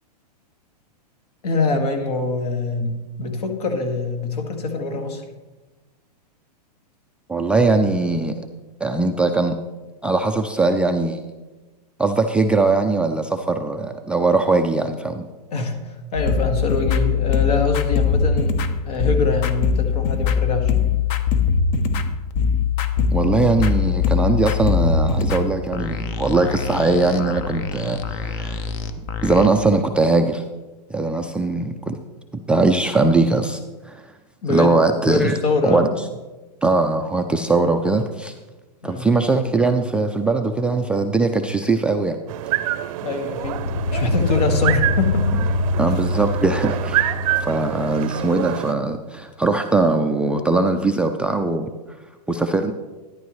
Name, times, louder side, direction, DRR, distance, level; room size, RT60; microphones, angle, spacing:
voice 1, 1.4-5.2 15.5-18.6 18.9-20.7 34.4-35.9 38.8-39.1 43.0-43.6 43.9-45.5, left 3 dB, 65° left, 5 dB, 2.0 m, -24 dB
voice 2, 7.3-8.5 8.8-9.6 10.0-11.2 12.0-15.3 23.1-28.7 29.2-30.4 30.9-32.0 32.5-34.0 34.5-35.4 35.6-35.9 36.6-38.3 38.8-42.2 45.8-47.1 47.4-51.7 52.3-52.7, right 3 dB, 5° right, 4 dB, 0.3 m, -20 dB
sound 1, 16.2-29.5, left 6 dB, 45° left, 0.8 m, -22 dB
sound 2, 42.3-48.7, right 13 dB, 55° right, 0.6 m, -27 dB
sound 3, 43.3-48.6, left 2 dB, 85° left, 0.6 m, -24 dB
12.0 x 11.0 x 3.1 m, 1.2 s
hypercardioid pair, 130°, 21 cm